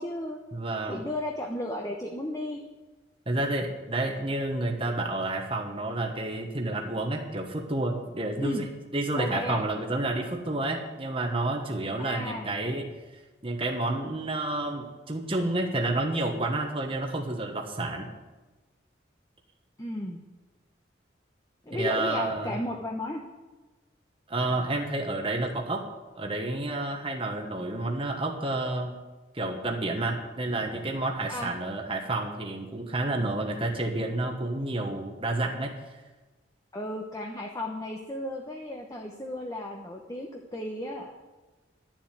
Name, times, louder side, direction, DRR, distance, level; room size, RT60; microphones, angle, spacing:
voice 1, 0.0-0.4 0.9-2.6 8.4-8.6 9.1-9.6 12.0-12.5 19.8-20.2 21.6-23.2 31.3-31.5 36.7-41.1, left 1 dB, 20° left, 1 dB, 1.0 m, -34 dB
voice 2, 0.5-1.0 3.3-8.7 8.9-12.8 13.4-18.1 21.7-22.5 24.3-25.8 26.2-28.9 29.3-35.7, right 2 dB, 30° right, 3 dB, 1.4 m, -30 dB
12.0 x 7.5 x 9.2 m, 1.2 s
head